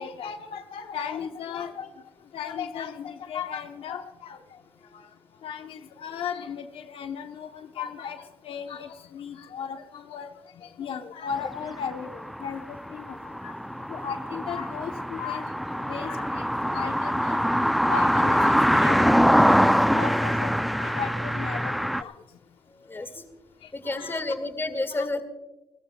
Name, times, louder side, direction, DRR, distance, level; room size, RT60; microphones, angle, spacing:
voice 1, 0.0-1.9 2.3-4.4 5.4-10.3 10.6-13.2 13.4-13.5 13.9-15.4 15.9-16.5 16.7-17.4 17.9-22.1 22.9-23.0 24.0-24.2 24.9-25.1, left 7 dB, 80° left, 6 dB, 0.9 m, -36 dB
sound 1, 11.4-22.0, equal, ahead, 0.4 m, -24 dB
voice 2, 22.7-23.2 23.7-25.2, left 2 dB, 25° left, 9 dB, 1.9 m, -30 dB
30.0 x 14.0 x 2.3 m, 1.0 s
cardioid pair, 75°, 9 cm